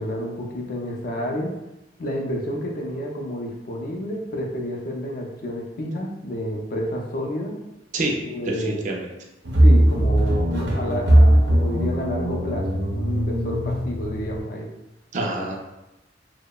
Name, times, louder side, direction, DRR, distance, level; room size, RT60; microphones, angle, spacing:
voice 1, 0.0-1.5 2.0-7.6 8.2-8.8 9.6-14.7, equal, 55° left, 0 dB, 0.4 m, -29 dB
voice 2, 8.4-9.1 15.1-15.6, right 2 dB, 45° right, 1 dB, 0.4 m, -26 dB
sound 1, 9.4-14.4, right 1 dB, 90° right, 0.6 m, -19 dB
2.8 x 2.0 x 2.2 m, 0.92 s
head